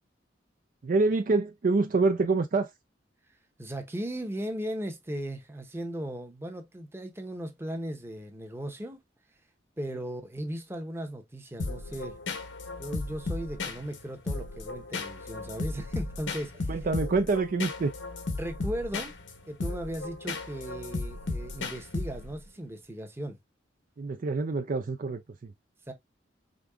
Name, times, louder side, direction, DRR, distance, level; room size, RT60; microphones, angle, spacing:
voice 1, 0.8-2.7 16.7-17.9 24.0-25.5, right 3 dB, 45° right, 0.4 m, -26 dB
voice 2, 3.6-9.0 9.8-12.1 12.8-16.7 18.4-19.1 19.5-23.4 25.9-26.0, right 1 dB, 15° right, 0.9 m, -37 dB
sound 1, 11.6-22.5, left 3 dB, 90° left, 1.1 m, -35 dB
5.1 x 3.6 x 2.3 m
head